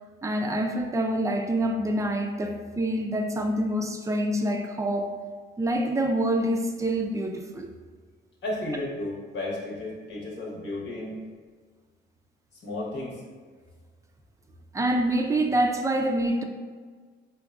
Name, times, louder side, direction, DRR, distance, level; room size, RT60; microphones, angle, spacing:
voice 1, 0.2-5.2 5.6-7.7 14.7-16.4, right 1 dB, 15° right, 4 dB, 0.3 m, -26 dB
voice 2, 8.4-11.2 12.6-13.2, left 1 dB, 65° left, -4 dB, 1.0 m, -33 dB
4.6 x 2.2 x 2.3 m, 1.5 s
cardioid pair, 90°, 20 cm